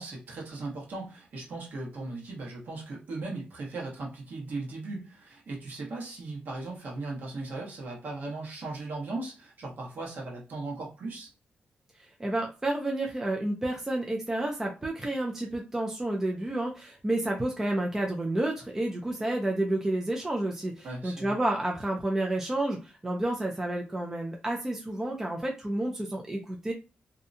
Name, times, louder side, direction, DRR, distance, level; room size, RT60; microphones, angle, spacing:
voice 1, 0.0-11.3 20.8-21.4, right 2 dB, 60° right, -2 dB, 1.1 m, -38 dB
voice 2, 12.2-26.7, right 1 dB, 15° right, 0 dB, 0.4 m, -30 dB
2.7 x 2.2 x 2.6 m, 0.32 s
wide cardioid pair, 155°, 3 cm